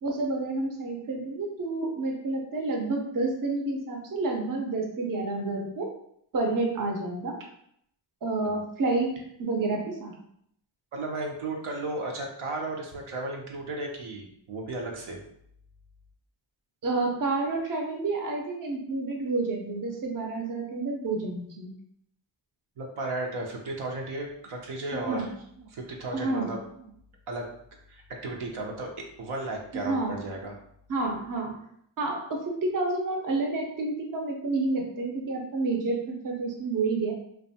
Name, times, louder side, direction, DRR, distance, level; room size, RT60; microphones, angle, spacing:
voice 1, 0.0-5.9 6.3-7.4 8.2-10.1 16.8-21.7 24.9-25.3 26.1-26.5 29.7-30.1 30.9-31.6 32.0-37.1, right 3 dB, 45° right, 2 dB, 0.6 m, -29 dB
voice 2, 10.9-15.2 22.8-25.3 25.6-26.9 27.3-27.5 27.9-30.6, right 2 dB, 80° right, 0 dB, 0.6 m, -35 dB
2.5 x 2.2 x 2.7 m, 0.70 s
cardioid pair, 60°, 49 cm